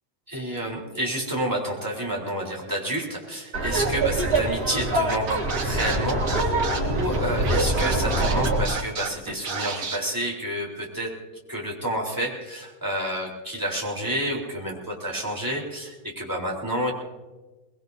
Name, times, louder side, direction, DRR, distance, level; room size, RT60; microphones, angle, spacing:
voice 1, 0.3-11.2 11.5-16.9, right 1 dB, 10° right, -2 dB, 3.6 m, -29 dB
Laughter, 3.5-8.6, right 2 dB, 85° right, 4.7 m, -24 dB
Scratching (performance technique), 5.1-10.0, right 4 dB, 45° right, 1.6 m, -31 dB
23.5 x 20.5 x 2.7 m, 1.2 s
omnidirectional pair, 2.3 m